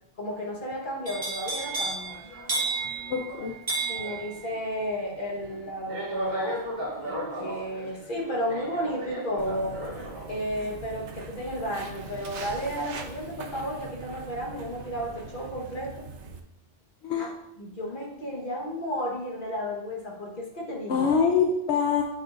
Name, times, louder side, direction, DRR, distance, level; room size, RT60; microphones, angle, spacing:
voice 1, 0.2-2.2 3.9-6.6 7.0-9.8 10.3-15.9 17.2-17.3 17.6-21.1, equal, 45° left, -2 dB, 1.5 m, -33 dB
sound 1, 1.1-13.0 13.4-13.8, right 2 dB, 40° right, 1.3 m, -34 dB
voice 2, 3.1-3.6 17.0-17.4 20.9-22.0, left 6 dB, 70° left, 1 dB, 1.0 m, -24 dB
Walk footsteps, 9.4-16.4, right 4 dB, 75° right, 1.0 m, -42 dB
9.1 x 4.6 x 2.5 m, 0.80 s
omnidirectional pair, 1.2 m